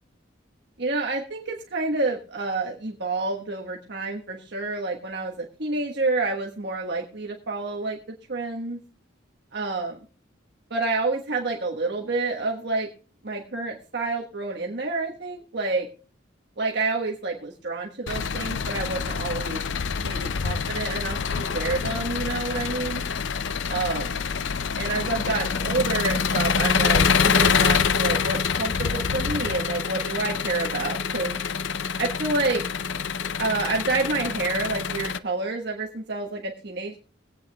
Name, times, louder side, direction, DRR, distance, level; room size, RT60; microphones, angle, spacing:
voice 1, 0.8-8.8 9.5-10.0 10.7-12.9 13.2-15.9 16.6-19.6 20.0-23.0 23.7-24.1 24.8-31.4 32.0-32.6 33.4-37.0, right 3 dB, 65° right, 0 dB, 1.4 m, -28 dB
Engine, 18.1-35.2, left 6 dB, 75° left, 0.5 m, -26 dB
23.5 x 8.8 x 2.3 m, 0.39 s
head